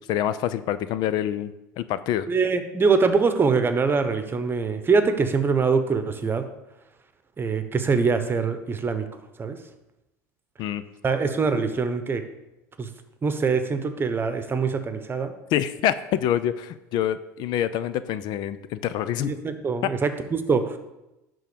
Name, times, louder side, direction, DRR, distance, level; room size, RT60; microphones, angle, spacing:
voice 1, 0.1-2.3 10.6-10.8 15.5-19.3 19.8-19.9, left 11 dB, 60° left, 14 dB, 0.5 m, -26 dB
voice 2, 2.3-6.4 7.4-9.1 9.4-9.6 11.0-12.2 12.8-12.9 13.2-15.3 19.2-20.8, right 5 dB, 25° right, 9 dB, 1.1 m, -23 dB
11.0 x 3.8 x 6.9 m, 0.96 s
hypercardioid pair, 85°, 8 cm